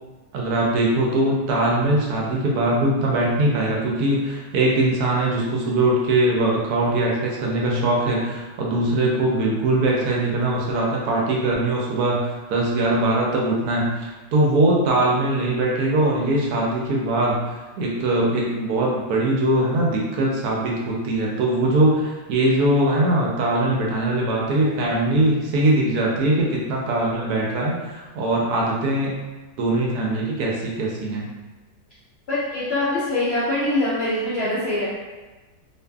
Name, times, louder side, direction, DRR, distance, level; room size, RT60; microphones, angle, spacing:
voice 1, 0.3-29.1 29.6-31.3, right 1 dB, 75° right, -3 dB, 1.0 m, -21 dB
voice 2, 32.3-34.9, left 1 dB, 60° left, -10 dB, 0.6 m, -23 dB
2.5 x 2.5 x 2.2 m, 1.2 s
omnidirectional pair, 1.7 m